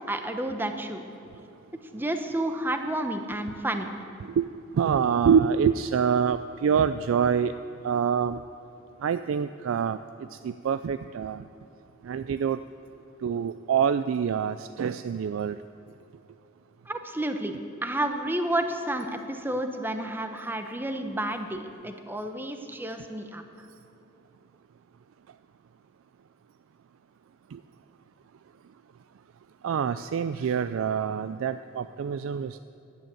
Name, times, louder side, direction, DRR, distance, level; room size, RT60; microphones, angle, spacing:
voice 1, 0.1-1.1 1.9-3.9 16.9-23.4, right 1 dB, 10° right, 6 dB, 0.8 m, -31 dB
voice 2, 4.7-7.5 7.8-8.4 9.0-11.5 12.0-12.6 13.2-15.6 27.5-27.6 29.6-32.6, right 7 dB, 75° right, 12 dB, 0.3 m, -26 dB
11.0 x 9.3 x 8.6 m, 2.8 s
head